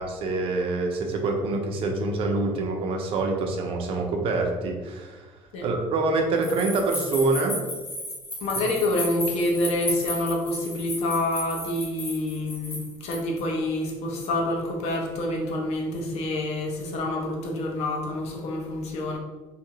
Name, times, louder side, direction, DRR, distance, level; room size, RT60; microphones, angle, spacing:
voice 1, 0.0-5.3 5.6-7.6, right 3 dB, 60° right, 2 dB, 0.5 m, -26 dB
sound 1, 6.4-13.4, equal, 20° left, 0.6 m, -34 dB
voice 2, 8.4-19.2, left 1 dB, 75° left, 0 dB, 0.6 m, -27 dB
2.6 x 2.4 x 2.9 m, 1.2 s
cardioid pair, 150°, 11 cm